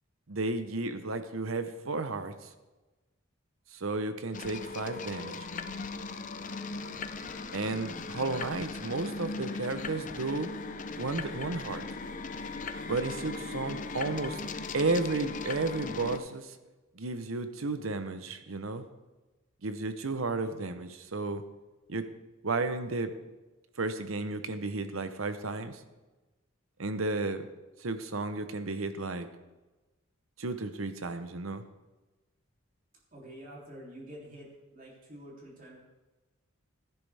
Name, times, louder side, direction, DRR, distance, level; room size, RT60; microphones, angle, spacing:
voice 1, 0.3-2.5 3.7-5.5 7.5-10.5 10.9-11.9 12.8-14.4 14.7-16.6 16.9-18.9 19.6-21.4 21.9-22.0 22.4-23.1 23.8-25.8 26.8-27.5 27.8-29.3 30.4-31.6, right 3 dB, 80° right, 10 dB, 0.9 m, -33 dB
sound 1, 4.3-16.2, left 4 dB, 40° left, 0.6 m, -38 dB
voice 2, 33.1-35.8, equal, 40° right, -3 dB, 3.2 m, -47 dB
15.0 x 10.5 x 3.5 m, 1.1 s
head